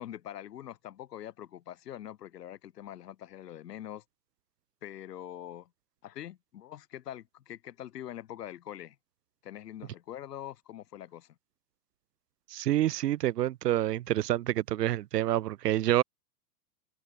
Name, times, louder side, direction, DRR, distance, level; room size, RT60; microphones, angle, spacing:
voice 1, 0.0-4.0 4.8-5.7 6.0-9.0 9.4-11.4, left 11 dB, 85° left, 7.2 m, -44 dB
voice 2, 12.5-16.0, right 13 dB, 85° right, 1.6 m, -27 dB
supercardioid pair, 155°, 47 cm